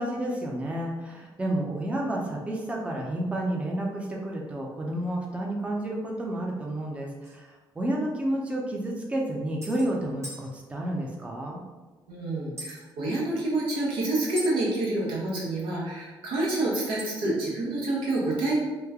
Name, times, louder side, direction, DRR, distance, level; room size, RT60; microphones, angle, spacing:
voice 1, 0.0-7.5 7.8-11.6, right 1 dB, 15° right, -2 dB, 0.6 m, -30 dB
sound 1, 7.2-7.4 8.4-8.5 8.7-8.8 9.6-9.9 10.2-10.4 12.6-12.8 14.4-14.5 17.0-17.3, right 1 dB, 35° right, 1.0 m, -39 dB
voice 2, 12.1-18.6, right 2 dB, 80° right, -5 dB, 1.1 m, -28 dB
3.1 x 2.2 x 3.5 m, 1.3 s
cardioid pair, 80°, 8 cm